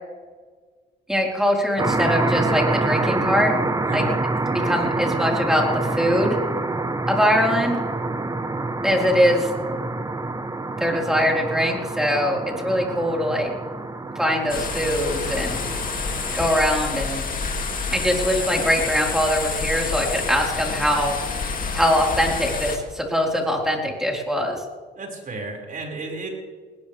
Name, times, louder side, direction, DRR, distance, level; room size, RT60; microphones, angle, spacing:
voice 1, 1.1-3.5 3.9-4.0 4.6-6.4 7.1-7.8 8.8-9.5 10.8-13.5 14.2-15.6 16.3-17.2 17.9-21.2 21.7-24.6, equal, ahead, -1 dB, 4.8 m, -22 dB
sound 1, 1.8-16.5, right 2 dB, 20° right, 1.1 m, -26 dB
voice 2, 3.8-4.1 24.9-26.3, right 3 dB, 45° right, 0 dB, 6.0 m, -32 dB
sound 2, 14.5-22.8, left 4 dB, 45° left, 2.8 m, -28 dB
20.0 x 19.0 x 3.6 m, 1.5 s
cardioid pair, 90°, 20 cm